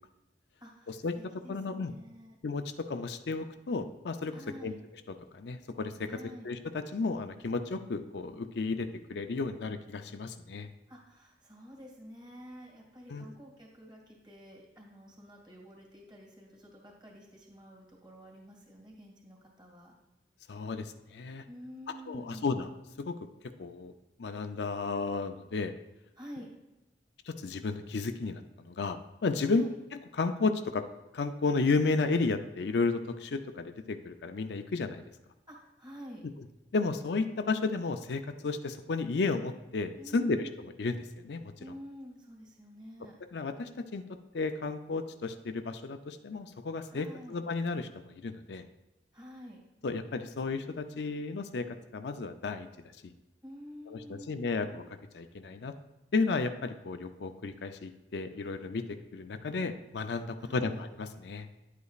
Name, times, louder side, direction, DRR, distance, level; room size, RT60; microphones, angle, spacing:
voice 1, 0.6-2.4 4.3-4.8 6.1-6.5 10.9-19.9 21.5-22.5 26.2-26.5 29.4-29.8 35.5-36.3 40.0-40.6 41.6-43.2 46.9-47.4 49.1-49.6 53.4-54.8 60.4-60.8, equal, 25° right, -2 dB, 2.1 m, -49 dB
voice 2, 1.5-1.9 2.4-4.7 5.3-6.1 6.4-10.7 13.1-13.2 20.5-21.4 22.1-22.7 23.0-23.2 23.6-23.9 24.2-25.7 27.3-29.6 30.2-30.8 31.1-35.0 36.7-40.5 40.8-41.5 43.3-44.0 44.3-48.6 49.8-52.7 53.0-53.1 53.9-54.8 55.1-55.7 56.1-61.5, left 3 dB, 75° left, 8 dB, 0.5 m, -33 dB
10.5 x 8.2 x 2.4 m, 0.99 s
head